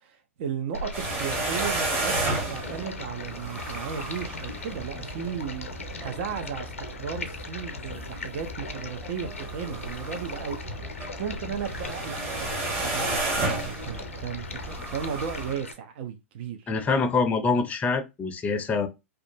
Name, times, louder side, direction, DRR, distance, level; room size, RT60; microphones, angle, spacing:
voice 1, 0.0-5.7 6.0-16.7, right 7 dB, 55° right, 0.5 m, -35 dB
Stream, 0.7-15.7, left 3 dB, 85° left, 0.5 m, -39 dB
sound 1, 0.9-15.5, right 2 dB, 30° right, 1.4 m, -33 dB
voice 2, 16.7-18.9, left 4 dB, 20° left, 0.5 m, -25 dB
2.4 x 2.3 x 2.6 m
hypercardioid pair, 100°, 7 cm